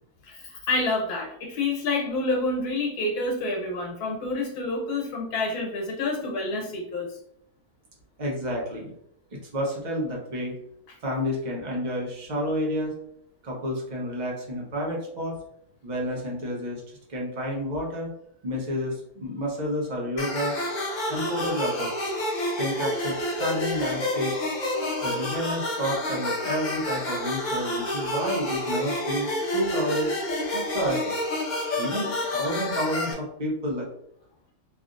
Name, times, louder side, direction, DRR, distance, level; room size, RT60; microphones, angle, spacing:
voice 1, 0.2-7.1, left 2 dB, 85° left, 0 dB, 1.4 m, -28 dB
voice 2, 8.2-8.9 9.3-10.5 11.0-12.9 13.4-15.3 15.8-16.8 17.1-18.1 18.4-20.5 21.1-21.9 22.6-24.3 25.0-30.1 30.5-31.1 31.8-33.9, equal, 35° right, -2 dB, 0.8 m, -30 dB
sound 1, 20.2-33.1, left 1 dB, 60° left, 0.4 m, -29 dB
3.3 x 2.5 x 2.5 m, 0.69 s
omnidirectional pair, 1.6 m